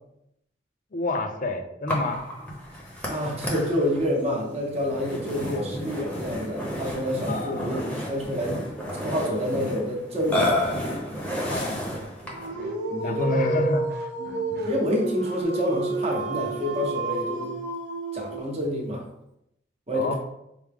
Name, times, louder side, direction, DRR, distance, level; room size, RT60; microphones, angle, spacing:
voice 1, 0.9-2.2 5.4-5.7 7.3-7.9 8.5-8.6 11.5-12.1 13.0-13.9 14.5-14.7 19.9-20.1, left 2 dB, 50° left, 6 dB, 0.5 m, -29 dB
Burping eructation, 1.9-12.6, left 1 dB, 10° left, 0.8 m, -31 dB
voice 2, 3.1-8.6 9.0-10.6 12.9-13.7 14.7-17.5 18.1-19.0 19.9-20.1, left 1 dB, 35° right, -1 dB, 0.8 m, -28 dB
sound 1, 10.5-15.4, right 1 dB, 60° right, 0.4 m, -45 dB
Dog, 12.3-18.7, right 3 dB, 90° right, 0.7 m, -30 dB
4.7 x 2.1 x 3.5 m, 0.80 s
head